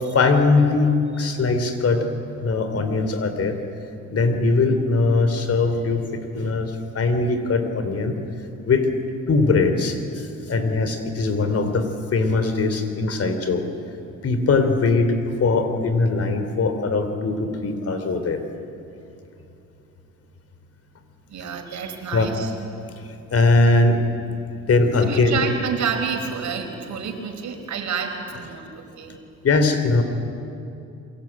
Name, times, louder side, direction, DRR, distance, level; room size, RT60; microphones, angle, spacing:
voice 1, 0.1-2.1 2.4-3.6 4.1-8.2 8.7-8.9 9.3-13.6 14.2-15.2 15.4-18.4 22.1-22.3 23.0-24.0 24.7-25.4 29.4-30.0, left 3 dB, 50° left, 8 dB, 3.7 m, -21 dB
voice 2, 21.3-22.5 24.2-24.7 25.0-29.2, right 6 dB, 65° right, 4 dB, 4.9 m, -29 dB
28.0 x 23.5 x 9.1 m, 2.8 s
cardioid pair, 90°, 30 cm